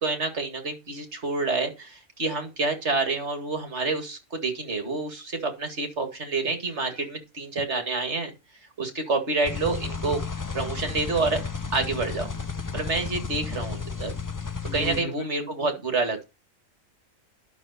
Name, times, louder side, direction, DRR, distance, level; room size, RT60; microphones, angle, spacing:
voice 1, 0.0-8.3 8.8-10.2 10.5-11.4 11.7-12.3 12.7-14.1 14.7-16.3, right 3 dB, 50° right, 5 dB, 2.4 m, -28 dB
sound 1, 9.4-15.0, left 5 dB, 25° left, 0.4 m, -33 dB
voice 2, 14.7-15.7, left 3 dB, 65° left, 3 dB, 1.9 m, -36 dB
10.5 x 6.6 x 4.2 m, 0.26 s
omnidirectional pair, 1.6 m